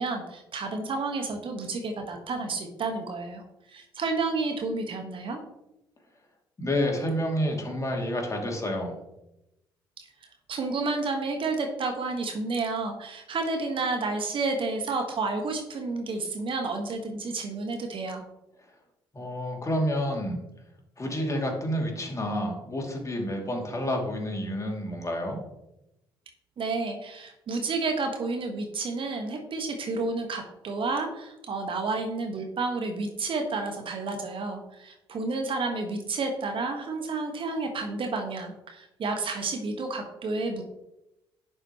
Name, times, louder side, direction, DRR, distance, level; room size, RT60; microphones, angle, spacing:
voice 1, 0.0-3.4 3.7-5.4 10.0-10.1 10.5-18.2 26.6-40.6, right 3 dB, 45° right, 4 dB, 1.5 m, -30 dB
voice 2, 6.6-9.0 19.1-20.4 21.0-25.4, equal, 25° left, 1 dB, 2.7 m, -29 dB
10.5 x 7.6 x 3.1 m, 0.91 s
figure-of-eight pair, 50°, 12 cm